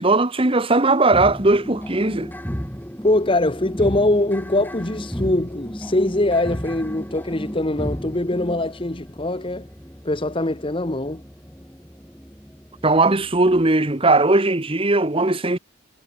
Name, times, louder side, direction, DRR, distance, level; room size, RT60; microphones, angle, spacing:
voice 1, 0.0-2.3 12.8-15.6, right 2 dB, 25° right, 1.1 m, -18 dB
sound 1, 1.1-13.8, equal, 10° left, 5.9 m, -34 dB
voice 2, 3.0-9.6 10.0-11.2, left 1 dB, 25° left, 1.0 m, -22 dB
head